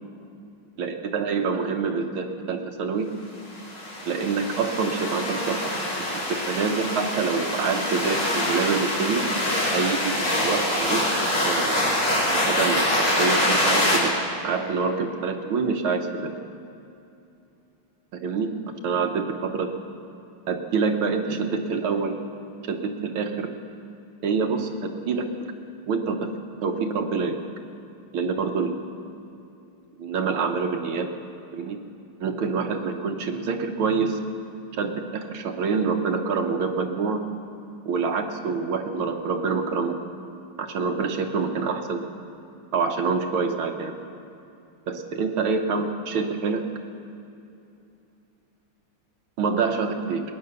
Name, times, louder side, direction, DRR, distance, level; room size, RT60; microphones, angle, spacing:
voice 1, 0.8-3.1 4.1-5.7 6.3-9.3 9.7-11.8 12.3-14.1 14.4-16.3 18.1-18.5 18.8-19.7 20.5-22.2 22.7-23.5 24.2-25.3 25.9-26.3 26.6-27.4 28.1-28.8 30.0-31.1 31.5-31.8 32.2-34.2 34.8-37.2 37.9-39.9 40.6-42.0 42.7-44.0 44.9-46.6 49.4-50.2, right 5 dB, 70° right, 5 dB, 1.8 m, -26 dB
sound 1, 3.5-14.0, left 1 dB, 65° left, 5.2 m, -25 dB
20.0 x 9.7 x 6.8 m, 2.7 s
omnidirectional pair, 2.4 m